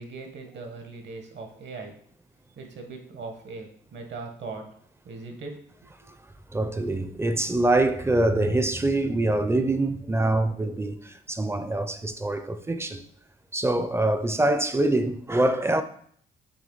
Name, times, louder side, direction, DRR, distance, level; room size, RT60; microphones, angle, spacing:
voice 1, 0.0-2.0 2.5-4.7 5.0-5.5 6.0-6.1, right 3 dB, 60° right, 1.4 m, -39 dB
voice 2, 6.5-13.0 13.5-15.8, right 2 dB, 10° right, 0.5 m, -24 dB
6.6 x 4.4 x 3.9 m
cardioid pair, 90°, 20 cm